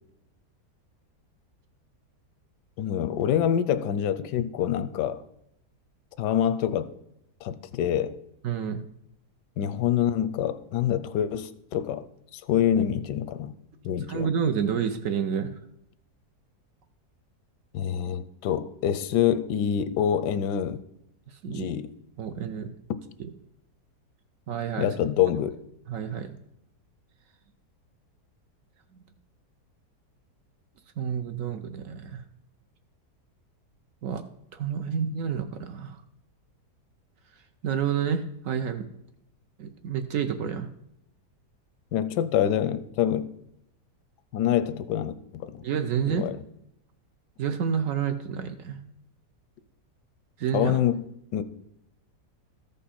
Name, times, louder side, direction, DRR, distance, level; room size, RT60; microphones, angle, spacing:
voice 1, 2.8-5.2 6.2-6.9 7.4-8.2 9.6-12.1 12.3-13.6 13.8-14.3 17.7-20.8 21.5-21.9 24.8-25.6 41.9-43.3 44.3-45.6 46.0-46.4 50.5-51.0 51.3-51.4, left 10 dB, 85° left, 1.2 m, -26 dB
voice 2, 8.4-8.8 14.1-15.5 21.4-21.7 22.2-22.7 24.5-24.9 25.9-26.4 31.0-32.2 34.0-34.2 34.5-36.0 37.6-38.9 39.6-40.7 45.6-46.3 47.4-48.8 50.4-50.7, right 7 dB, 65° right, 0.9 m, -29 dB
13.5 x 5.5 x 4.2 m
omnidirectional pair, 1.8 m